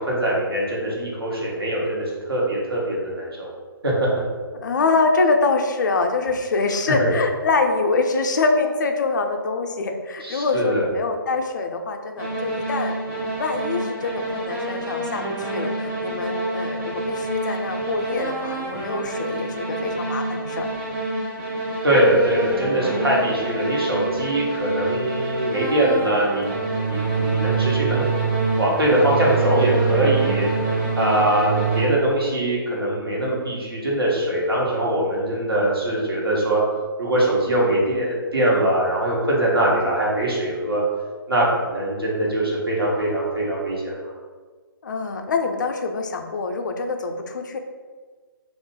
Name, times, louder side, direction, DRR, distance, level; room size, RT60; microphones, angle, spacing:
voice 1, 0.0-3.5 3.8-4.1 7.0-7.1 10.2-10.9 21.8-26.5 26.9-28.0 28.6-30.5 31.0-36.6 37.0-40.8 41.3-44.0, right 1 dB, 80° right, -5 dB, 1.0 m, -22 dB
voice 2, 4.5-20.7 44.8-47.6, left 3 dB, 55° left, 4 dB, 0.4 m, -24 dB
sound 1, 12.2-31.9, right 3 dB, 15° right, 0.5 m, -26 dB
2.5 x 2.4 x 3.7 m, 1.5 s
figure-of-eight pair, 130°, 12 cm